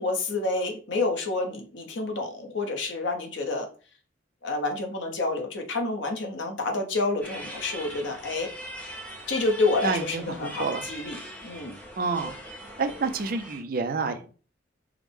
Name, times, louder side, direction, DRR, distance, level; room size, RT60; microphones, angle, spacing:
voice 1, 0.0-3.7 4.4-8.5 9.3-11.8, left 3 dB, 70° left, 3 dB, 0.9 m, -29 dB
sound 1, 7.2-13.6, right 1 dB, 10° left, 0.6 m, -41 dB
voice 2, 9.8-10.8 12.0-12.3 12.8-14.4, right 4 dB, 50° right, 8 dB, 0.5 m, -29 dB
4.8 x 2.1 x 3.4 m, 0.38 s
head